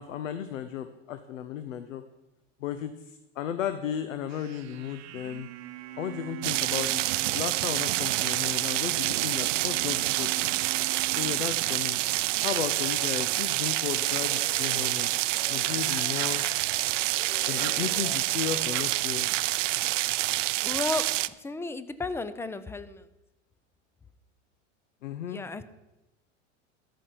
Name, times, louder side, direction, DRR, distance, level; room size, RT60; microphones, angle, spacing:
voice 1, 0.0-2.0 2.6-5.5 6.0-7.0 7.3-10.3 11.2-12.0 12.4-15.1 15.5-16.4 17.5-19.3 25.0-25.4, left 9 dB, 85° left, 10 dB, 0.8 m, -34 dB
sound 1, 4.3-15.8 16.1-20.0, right 13 dB, 45° right, 0.9 m, -44 dB
sound 2, 6.4-21.3, right 17 dB, 75° right, 0.5 m, -27 dB
Human voice, 12.5-18.9, left 2 dB, 60° left, 3.5 m, -45 dB
voice 2, 20.6-21.0 21.4-23.0 25.3-25.6, left 3 dB, 5° left, 13 dB, 0.5 m, -33 dB
13.5 x 5.3 x 5.7 m, 0.97 s
hypercardioid pair, 95°, 38 cm